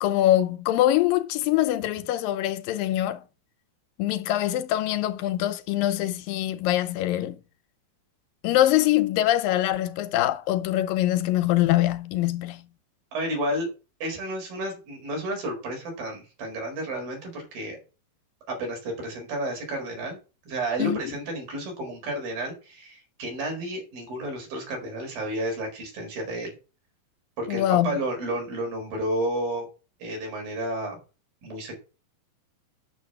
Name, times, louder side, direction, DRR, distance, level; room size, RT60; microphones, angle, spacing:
voice 1, 0.0-3.2 4.0-7.4 8.4-12.7 20.8-21.0 27.5-28.0, left 14 dB, 80° left, 2.4 m, -24 dB
voice 2, 13.1-13.7 14.0-17.8 18.5-20.2 20.5-26.5 27.4-29.7 30.0-31.0 31.4-31.8, right 1 dB, 75° right, 6.5 m, -31 dB
9.3 x 6.7 x 7.7 m
omnidirectional pair, 4.1 m